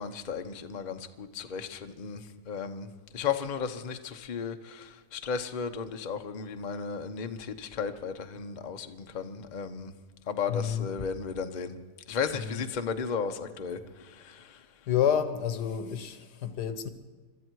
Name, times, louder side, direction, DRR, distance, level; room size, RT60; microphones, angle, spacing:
voice 1, 0.0-9.9 10.3-11.8 12.1-14.9, left 6 dB, 35° left, 0.8 m, -35 dB
voice 2, 10.5-10.9 12.3-12.6 14.9-16.9, left 9 dB, 85° left, 1.7 m, -29 dB
23.5 x 13.0 x 4.7 m
omnidirectional pair, 1.7 m